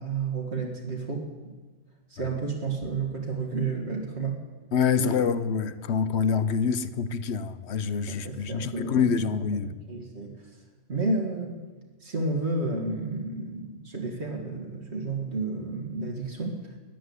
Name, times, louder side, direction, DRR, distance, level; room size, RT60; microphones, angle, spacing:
voice 1, 0.0-1.6 2.1-4.4 5.0-5.3 8.1-9.3 9.9-10.5 10.9-11.6 12.0-16.7, right 3 dB, 65° right, 2.2 m, -31 dB
voice 2, 4.7-9.7, left 6 dB, 65° left, 1.0 m, -26 dB
14.0 x 10.5 x 9.6 m
omnidirectional pair, 1.2 m